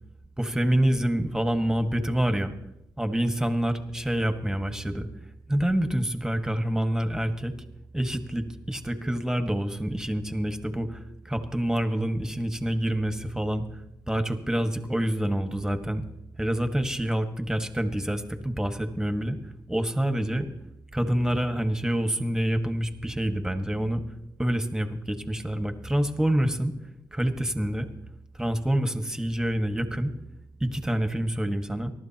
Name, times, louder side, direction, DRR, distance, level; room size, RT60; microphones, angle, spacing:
voice 1, 0.4-2.5 3.0-5.1 5.5-7.5 7.9-13.6 14.1-16.0 16.4-19.4 19.7-20.5 20.9-24.0 24.4-26.8 27.1-27.9 28.4-30.1 30.6-31.9, right 1 dB, 5° right, 7 dB, 1.8 m, -27 dB
23.5 x 12.0 x 3.0 m, 0.84 s
supercardioid pair, 50°, 9 cm